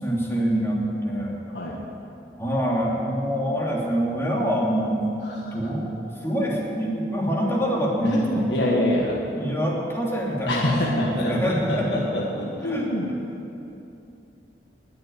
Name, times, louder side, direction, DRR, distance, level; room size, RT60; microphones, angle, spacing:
voice 1, 0.0-1.3 2.4-5.0 5.5-5.9 6.2-8.5 9.3-12.0 12.6-12.9, equal, 15° left, -4 dB, 2.9 m, -25 dB
voice 2, 1.5-1.8 5.2-5.5 8.0-9.3 10.5-13.1, left 1 dB, 65° left, -3 dB, 1.7 m, -26 dB
20.5 x 6.8 x 9.5 m, 2.7 s
head